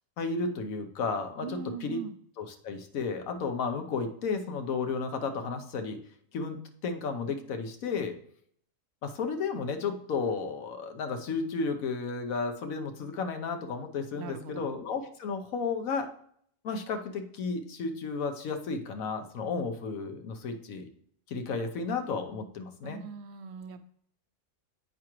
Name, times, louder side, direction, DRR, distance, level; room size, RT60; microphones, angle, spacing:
voice 1, 0.2-2.0 2.4-6.0 6.3-6.6 6.8-8.2 9.0-16.1 16.6-20.9 21.3-23.0, left 4 dB, 85° left, 6 dB, 1.2 m, -33 dB
voice 2, 1.4-2.2 14.2-14.7 22.8-23.8, right 6 dB, 65° right, 9 dB, 0.8 m, -41 dB
8.1 x 4.8 x 3.0 m, 0.64 s
omnidirectional pair, 1.4 m